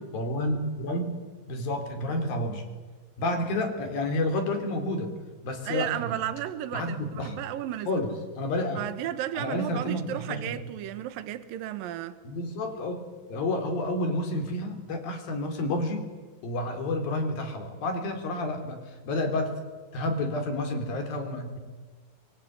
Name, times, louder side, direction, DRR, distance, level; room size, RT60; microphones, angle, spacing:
voice 1, 0.1-2.6 3.2-5.1 5.4-6.2 6.7-7.4 7.9-8.8 9.4-10.7 12.2-16.1 16.4-19.6 19.9-21.6, left 1 dB, 70° left, 5.4 m, -30 dB
voice 2, 5.7-8.0 8.8-12.2, right 12 dB, 70° right, 2.9 m, -34 dB
25.5 x 23.0 x 9.4 m
omnidirectional pair, 4.3 m